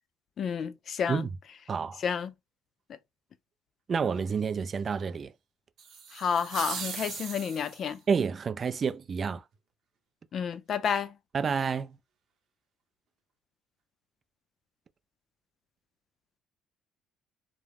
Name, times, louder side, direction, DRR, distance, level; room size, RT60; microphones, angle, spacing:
voice 1, 0.4-1.3 2.0-2.3 6.1-8.0 10.3-11.2, left 7 dB, 50° left, 0.4 m, -30 dB
voice 2, 1.7-2.0 3.9-5.3 8.1-9.4 11.3-12.0, right 6 dB, 40° right, 0.3 m, -29 dB
sound 1, 5.8-8.0, right 6 dB, 60° right, 0.8 m, -39 dB
2.3 x 2.1 x 3.3 m
hypercardioid pair, 60°, 0 cm